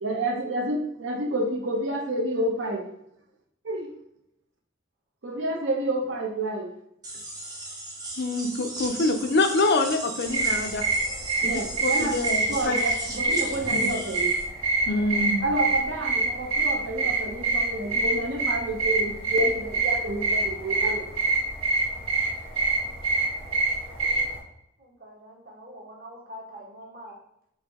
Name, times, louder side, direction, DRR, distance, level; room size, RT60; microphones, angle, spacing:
voice 1, 0.0-2.8 3.6-3.9 5.2-6.7 11.4-14.3 15.4-21.1, right 1 dB, 60° right, 2 dB, 0.8 m, -29 dB
sound 1, 7.0-14.4, right 2 dB, 20° right, 0.7 m, -37 dB
voice 2, 8.2-10.9 11.4-11.5 11.8-12.8 13.7-13.9 14.9-15.5, left 2 dB, 50° left, 6 dB, 0.5 m, -25 dB
sound 2, 10.3-24.4, right 3 dB, 85° right, 1.5 m, -26 dB
voice 3, 24.8-27.1, equal, 45° right, -3 dB, 1.2 m, -44 dB
4.6 x 2.7 x 3.5 m, 0.78 s
head